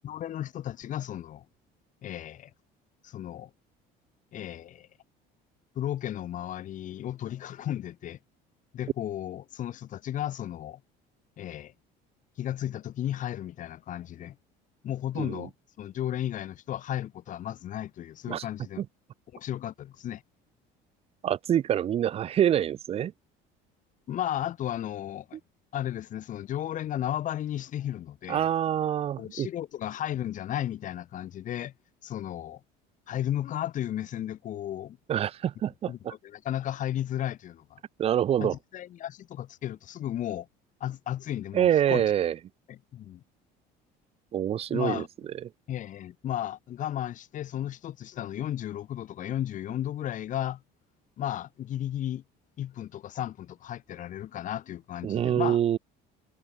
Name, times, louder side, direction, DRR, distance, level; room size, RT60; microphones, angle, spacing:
voice 1, 0.0-1.4 2.0-2.5 3.0-3.5 4.3-4.9 5.8-8.2 8.7-10.8 11.4-11.7 12.4-14.4 14.8-15.5 15.8-18.8 19.3-20.2 24.1-25.4 25.7-28.5 29.2-31.7 32.0-32.6 33.1-35.0 35.9-37.8 38.4-40.5 40.8-42.1 42.7-43.2 44.7-45.1 45.7-50.6 51.2-52.2 52.6-55.6, left 11 dB, 45° left, 2.0 m, -34 dB
voice 2, 15.2-15.5 18.3-18.4 18.8-18.9 21.2-23.1 28.3-29.5 35.1-36.1 38.0-38.6 41.5-42.4 44.3-45.0 55.0-55.8, right 10 dB, 35° right, 0.5 m, -26 dB
cardioid pair, 145°, 19 cm